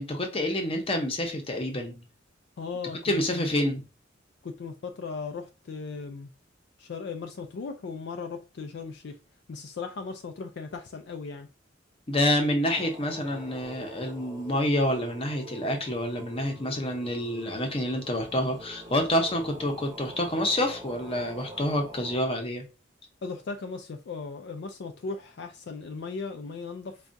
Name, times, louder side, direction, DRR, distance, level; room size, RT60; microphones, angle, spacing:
voice 1, 0.0-2.0 3.0-3.8 12.1-22.6, left 1 dB, 30° left, 0.8 m, -28 dB
voice 2, 2.6-3.5 4.4-6.3 6.8-9.2 9.5-11.5 23.2-27.0, left 4 dB, 60° left, 0.4 m, -37 dB
sound 1, 12.7-22.2, equal, 20° right, 0.7 m, -45 dB
4.5 x 2.4 x 2.5 m
head